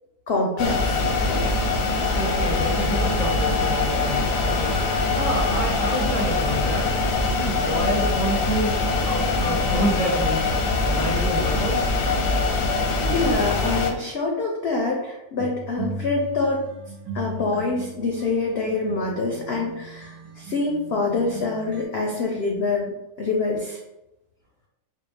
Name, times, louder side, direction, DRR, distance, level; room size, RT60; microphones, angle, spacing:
voice 1, 0.3-1.0 1.3-1.4 4.2-4.3 13.0-16.6 17.1-22.9 23.2-23.8, left 3 dB, 70° left, 0 dB, 0.6 m, -25 dB
sound 1, 0.6-13.9, left 3 dB, 85° left, 1.2 m, -23 dB
Wind instrument woodwind instrument, 1.9-6.4, right 3 dB, 50° right, 1.0 m, -38 dB
voice 2, 2.1-6.9 7.3-10.4 10.9-11.9, equal, 30° right, -5 dB, 0.7 m, -28 dB
sound 2, 15.4-21.8, right 2 dB, 90° right, 1.3 m, -37 dB
4.7 x 2.1 x 3.2 m, 0.92 s
omnidirectional pair, 1.7 m